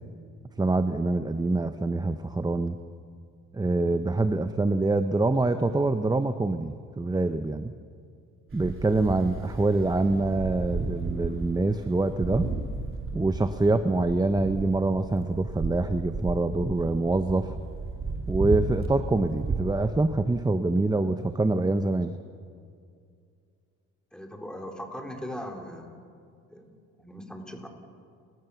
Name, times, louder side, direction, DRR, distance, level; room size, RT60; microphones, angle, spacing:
voice 1, 0.6-2.8 3.5-7.7 8.5-12.5 13.1-17.5 18.3-22.2, right 2 dB, 15° right, 10 dB, 0.8 m, -25 dB
sound 1, 8.5-19.6, right 3 dB, 45° right, 3.1 m, -34 dB
voice 2, 24.1-25.9 26.5-27.7, equal, 5° left, 1 dB, 4.1 m, -39 dB
30.0 x 16.0 x 7.1 m, 2.3 s
cardioid pair, 90°, 30 cm